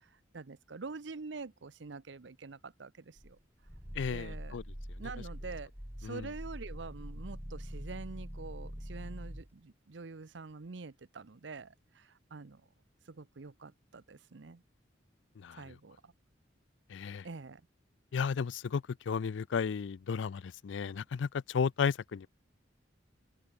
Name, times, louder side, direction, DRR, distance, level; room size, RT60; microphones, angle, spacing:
voice 1, 0.3-3.4 4.1-4.6 5.0-5.7 6.0-12.6 13.1-14.6 15.5-16.1 17.2-17.6, right 4 dB, 80° right, 0.8 m, -46 dB
Growling, 3.2-9.5, equal, 15° right, 2.9 m, -44 dB
voice 2, 4.0-4.6 6.0-6.3 15.4-15.6 16.9-17.2 18.1-22.3, left 6 dB, 80° left, 0.4 m, -33 dB
open air
head